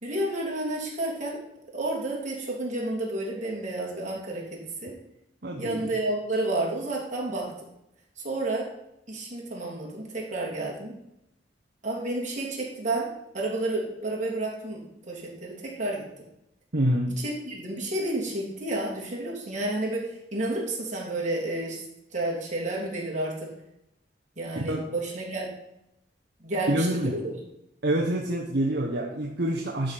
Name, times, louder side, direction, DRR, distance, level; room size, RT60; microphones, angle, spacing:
voice 1, 0.0-1.4 1.7-4.9 5.6-7.5 8.2-8.7 9.1-10.9 11.8-13.1 13.3-16.0 17.2-21.8 22.1-23.5 24.4-25.5 26.4-27.3, right 2 dB, 45° right, -4 dB, 3.1 m, -30 dB
voice 2, 5.4-5.9 16.7-17.2 24.7-24.9 26.7-27.2 27.8-29.9, right 1 dB, 60° right, -1 dB, 1.2 m, -26 dB
11.5 x 5.2 x 6.0 m, 0.83 s
head